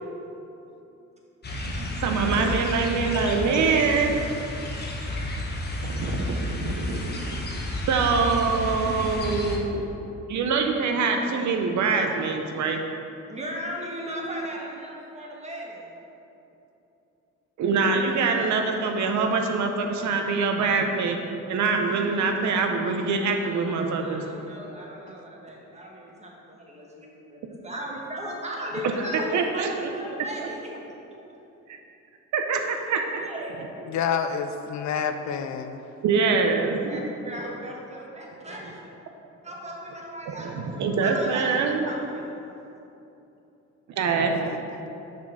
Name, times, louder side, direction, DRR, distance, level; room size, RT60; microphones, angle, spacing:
sound 1, 1.4-9.6, left 1 dB, 35° left, 1.1 m, -31 dB
voice 1, 2.0-4.2 5.8-7.4 7.9-9.9 10.3-12.8 17.6-21.2 21.5-24.2 29.3-29.9 31.7-31.8 32.3-32.6 32.9-33.2 36.0-37.1 40.3-41.9 44.0-44.4, right 4 dB, 70° right, 3 dB, 0.8 m, -24 dB
voice 2, 8.7-9.1 13.3-15.9 23.3-30.8 32.5-34.0 36.9-38.8 39.4-42.3, equal, 20° right, -3 dB, 1.5 m, -37 dB
voice 3, 33.9-35.8 44.2-44.6, left 7 dB, 65° left, 7 dB, 0.5 m, -29 dB
6.0 x 4.4 x 6.2 m, 2.9 s
cardioid pair, 90°, 30 cm